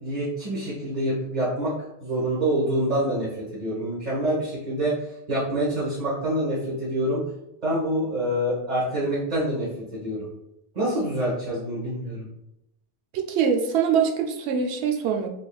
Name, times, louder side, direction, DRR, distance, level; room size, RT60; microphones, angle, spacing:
voice 1, 0.0-1.7 2.0-7.3 7.6-10.3 10.7-12.3, right 1 dB, 45° right, -8 dB, 1.2 m, -26 dB
voice 2, 13.1-15.3, right 7 dB, 85° right, 4 dB, 0.9 m, -23 dB
4.1 x 3.4 x 2.3 m, 0.84 s
omnidirectional pair, 1.1 m